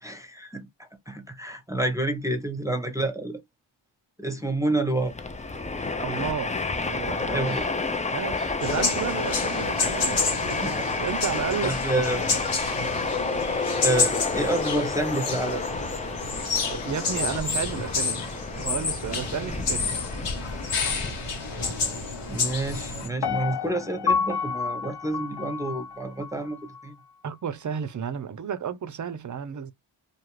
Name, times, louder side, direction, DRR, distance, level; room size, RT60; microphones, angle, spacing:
voice 1, 0.0-3.4 4.2-5.2 7.3-7.7 10.6-10.9 11.6-12.2 13.8-15.7 21.5-21.7 22.3-27.0, right 2 dB, 5° right, 0.8 m, -29 dB
Train, 5.0-22.6, left 3 dB, 15° left, 0.4 m, -30 dB
voice 2, 6.0-7.6 8.1-10.2 11.0-11.8 16.7-20.1 27.2-29.7, right 7 dB, 40° right, 0.6 m, -32 dB
sound 1, 8.6-23.1, left 4 dB, 85° left, 1.3 m, -30 dB
Piano, 23.2-26.3 26.7-26.8, left 6 dB, 55° left, 0.7 m, -29 dB
2.5 x 2.4 x 3.1 m
cardioid pair, 40°, 49 cm